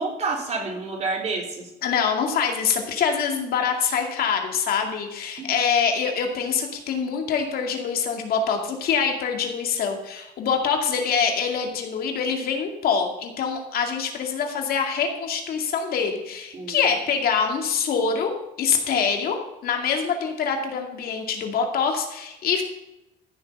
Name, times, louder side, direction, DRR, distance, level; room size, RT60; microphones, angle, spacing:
voice 1, 0.0-1.7 5.4-5.5 16.5-16.9, right 3 dB, 40° right, 1 dB, 3.6 m, -29 dB
voice 2, 1.8-18.3 18.6-22.6, left 6 dB, 60° left, 3 dB, 2.3 m, -25 dB
14.0 x 6.7 x 6.5 m, 0.94 s
cardioid pair, 110°, 17 cm